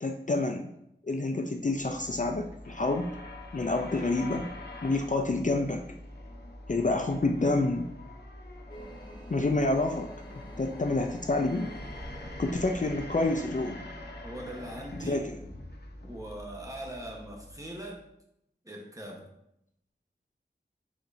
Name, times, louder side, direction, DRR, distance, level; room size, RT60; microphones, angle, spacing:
voice 1, 0.0-0.7 1.0-3.1 3.5-4.5 4.8-5.8 6.7-7.9 9.3-10.1 10.6-11.7 12.4-13.9 15.1-15.4, left 2 dB, 45° left, 4 dB, 0.4 m, -28 dB
sound 1, 1.6-18.0, left 1 dB, 65° left, 0.8 m, -45 dB
sound 2, 8.7-14.4, equal, 25° left, 0.9 m, -47 dB
voice 2, 14.2-15.2 16.0-18.0 18.6-19.3, right 1 dB, 20° right, 0 dB, 1.0 m, -41 dB
5.0 x 4.0 x 2.6 m, 0.77 s
wide cardioid pair, 45°, 18 cm